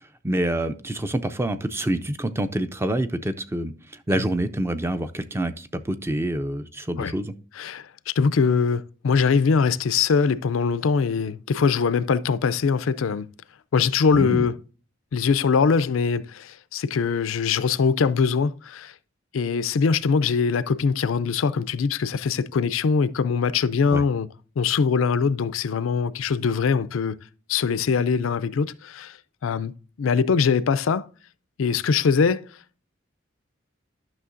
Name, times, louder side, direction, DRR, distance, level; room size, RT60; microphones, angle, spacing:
voice 1, 0.0-7.3 14.1-14.5 23.9-24.0, right 1 dB, 10° right, 0.4 m, -27 dB
voice 2, 7.6-13.3 13.7-14.6 15.1-18.9 19.3-24.3 24.6-27.2 27.5-29.2 29.4-29.7 30.0-31.1 31.6-32.5, left 5 dB, 85° left, 0.4 m, -22 dB
11.0 x 6.1 x 2.5 m
head